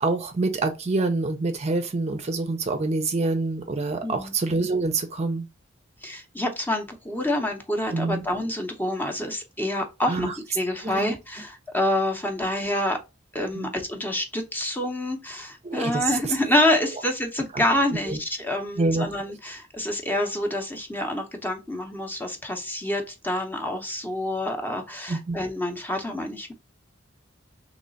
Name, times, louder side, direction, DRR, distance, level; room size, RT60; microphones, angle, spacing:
voice 1, 0.0-5.4 7.9-8.3 10.1-10.3 10.8-11.1 13.5-13.7 15.6-16.1 17.5-17.6 18.1-18.2 18.8-19.1 25.1-25.4, right 3 dB, 35° right, 0.5 m, -26 dB
voice 2, 4.0-4.3 6.0-10.3 10.5-13.0 13.3-26.5, left 1 dB, 10° left, 0.7 m, -27 dB
3.3 x 3.1 x 3.9 m
head